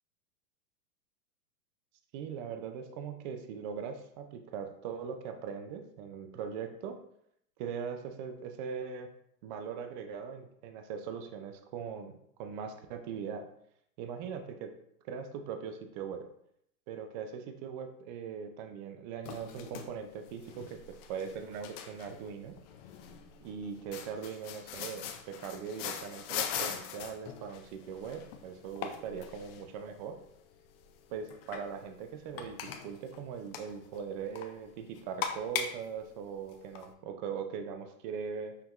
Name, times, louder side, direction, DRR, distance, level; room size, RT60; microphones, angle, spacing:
voice 1, 2.1-7.0 7.6-9.1 9.4-13.5 14.0-14.7 15.0-16.3 16.9-22.6 23.4-30.2 31.1-38.6, right 6 dB, 35° right, 7 dB, 0.4 m, -40 dB
sound 1, 19.2-36.9, left 8 dB, 45° left, 0.5 m, -42 dB
5.7 x 2.2 x 3.0 m, 0.73 s
hypercardioid pair, 135°, 42 cm